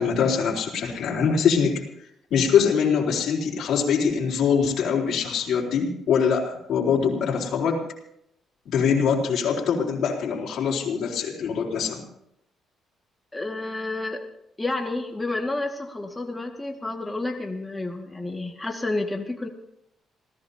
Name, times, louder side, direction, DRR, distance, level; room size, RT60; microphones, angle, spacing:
voice 1, 0.0-1.8 2.3-7.8 8.7-12.1, left 6 dB, 65° left, -3 dB, 4.2 m, -23 dB
voice 2, 13.3-14.2 14.6-19.5, left 2 dB, 15° left, 3 dB, 2.0 m, -30 dB
27.5 x 17.0 x 2.9 m, 0.77 s
cardioid pair, 90°, 0 cm